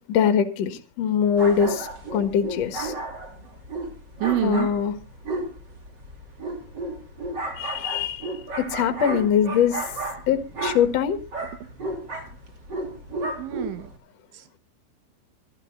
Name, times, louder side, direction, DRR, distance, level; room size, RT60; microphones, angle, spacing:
voice 1, 0.1-2.9 4.4-4.9 7.6-9.8 10.3-11.2, left 8 dB, 55° left, 1.9 m, -23 dB
sound 1, 1.4-14.0, right 2 dB, 30° right, 2.8 m, -33 dB
voice 2, 4.2-4.7 13.4-13.9 14.3-14.6, right 15 dB, 85° right, 3.6 m, -27 dB
25.0 x 12.0 x 2.5 m
omnidirectional pair, 5.2 m